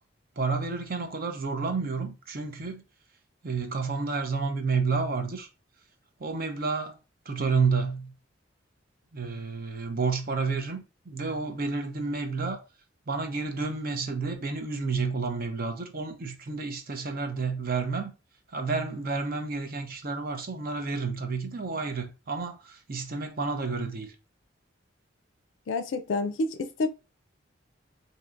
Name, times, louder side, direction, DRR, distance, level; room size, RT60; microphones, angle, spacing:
voice 1, 0.4-2.8 3.4-5.5 6.2-7.0 7.3-8.1 9.1-12.6 13.1-18.1 18.5-24.1, right 4 dB, 50° right, 0.7 m, -30 dB
voice 2, 25.7-26.9, left 3 dB, 70° left, 0.4 m, -28 dB
4.4 x 2.7 x 2.5 m
head